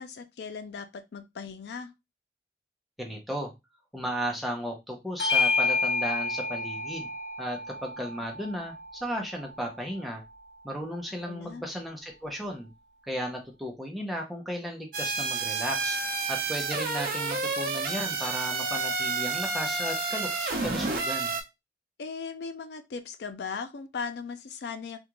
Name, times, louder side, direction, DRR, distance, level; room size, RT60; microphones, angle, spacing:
voice 1, 0.0-1.9 11.3-11.6 22.0-25.0, left 5 dB, 70° left, 0.4 m, -38 dB
voice 2, 3.0-3.5 3.9-7.1 7.4-10.2 10.6-12.7 13.1-16.0 16.3-21.3, equal, ahead, 0.7 m, -35 dB
Bell / Doorbell, 5.2-10.0, left 4 dB, 85° left, 0.8 m, -30 dB
sound 1, 14.9-21.4, right 4 dB, 55° right, 0.7 m, -30 dB
3.5 x 2.4 x 3.0 m
head